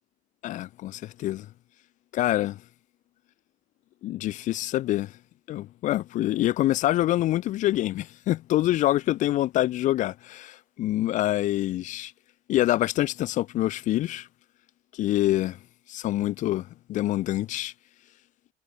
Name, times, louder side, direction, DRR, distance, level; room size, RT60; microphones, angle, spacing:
voice 1, 0.4-1.5 2.1-2.6 4.0-5.1 5.5-12.1 12.5-14.3 14.9-15.6 15.9-17.7, left 14 dB, 50° left, 0.4 m, -26 dB
supercardioid pair, 100°, 16 cm